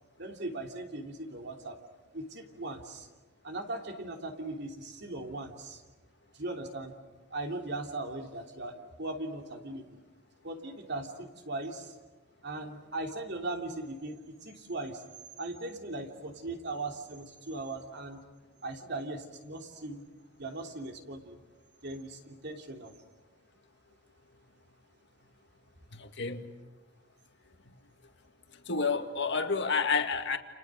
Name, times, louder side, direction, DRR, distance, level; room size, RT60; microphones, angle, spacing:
voice 1, 0.2-1.8 2.1-3.1 3.4-5.8 6.3-6.9 7.3-10.0 10.4-11.9 12.4-15.0 15.4-18.2 18.6-20.0 20.4-21.4 21.8-22.9, right 2 dB, 55° right, 3.2 m, -39 dB
voice 2, 26.0-26.5 28.7-30.4, left 5 dB, 55° left, 2.0 m, -29 dB
30.0 x 29.5 x 6.4 m
head